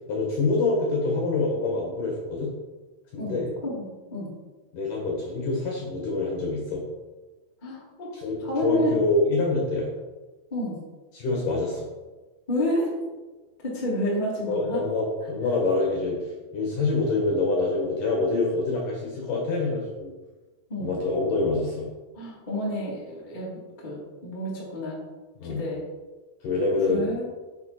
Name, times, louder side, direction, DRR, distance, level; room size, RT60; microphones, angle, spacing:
voice 1, 0.1-2.5 3.1-3.5 4.7-6.8 8.1-9.9 11.1-11.9 14.5-16.2 16.5-20.1 20.8-21.9 25.4-25.6 26.4-27.0, left 3 dB, 60° left, -2 dB, 2.6 m, -26 dB
voice 2, 3.2-3.9 4.1-4.3 7.6-8.1 8.4-9.0 10.5-10.8 12.5-12.9 13.6-14.8 20.7-20.9 22.2-23.5 23.8-24.0 24.2-25.0 25.4-25.8 26.9-27.3, left 1 dB, 15° left, -5 dB, 1.8 m, -29 dB
9.7 x 7.2 x 4.3 m, 1.2 s
omnidirectional pair, 5.1 m